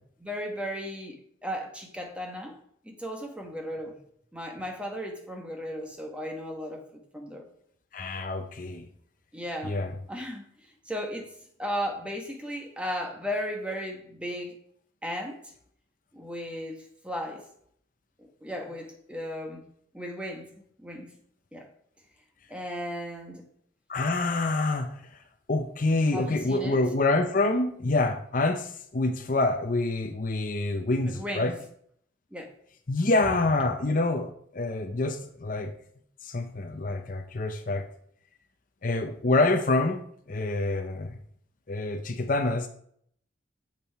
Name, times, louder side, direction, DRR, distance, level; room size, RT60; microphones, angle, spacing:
voice 1, 0.2-2.6 2.8-4.0 4.3-7.5 9.3-10.4 10.8-11.3 11.6-14.6 15.0-15.5 16.1-17.5 18.2-19.6 19.9-20.5 20.8-21.1 21.5-21.7 22.5-23.4 26.0-26.8 31.0-31.5 32.3-32.5, equal, 5° right, 3 dB, 1.2 m, -35 dB
voice 2, 7.9-8.9 9.6-9.9 23.9-25.0 25.5-31.5 32.9-35.7 36.2-37.9 38.8-40.0 40.3-41.2 41.7-42.7, left 2 dB, 45° left, 6 dB, 0.6 m, -26 dB
7.5 x 7.1 x 4.6 m, 0.65 s
head